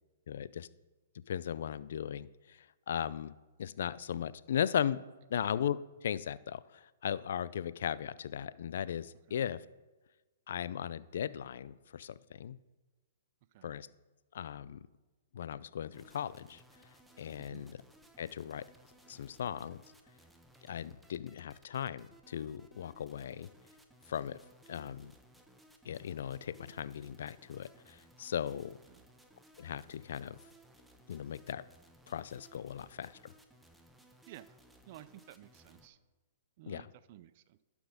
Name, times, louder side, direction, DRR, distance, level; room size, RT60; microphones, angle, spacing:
voice 1, 0.3-0.7 1.3-5.0 5.3-9.6 10.5-12.6 13.6-13.9 14.3-14.8 15.3-16.6 17.2-17.8 18.2-18.6 19.1-19.8 20.6-23.5 24.1-24.4 24.7-25.1 25.8-28.8 29.6-30.4 31.1-31.6 32.1-33.3 36.7-36.9, left 9 dB, 70° left, 18 dB, 0.4 m, -37 dB
sound 1, 15.9-35.9, right 1 dB, ahead, 1.0 m, -61 dB
voice 2, 34.9-36.0 36.6-37.6, right 13 dB, 50° right, 15 dB, 0.5 m, -53 dB
11.5 x 6.2 x 5.0 m, 1.2 s
hypercardioid pair, 135°, 0 cm